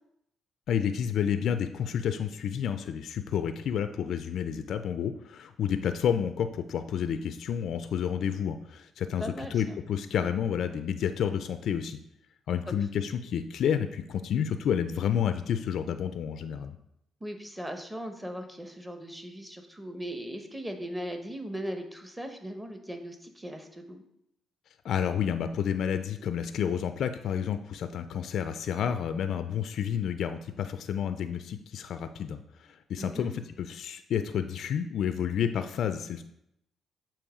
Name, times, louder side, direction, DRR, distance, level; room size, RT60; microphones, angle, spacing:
voice 1, 0.7-12.0 12.5-16.8 24.8-36.2, left 8 dB, 70° left, 9 dB, 0.3 m, -30 dB
voice 2, 9.2-9.8 17.2-24.0 33.0-33.3, equal, 10° right, 5 dB, 0.9 m, -38 dB
7.0 x 3.0 x 4.8 m, 0.79 s
cardioid pair, 90°, 0 cm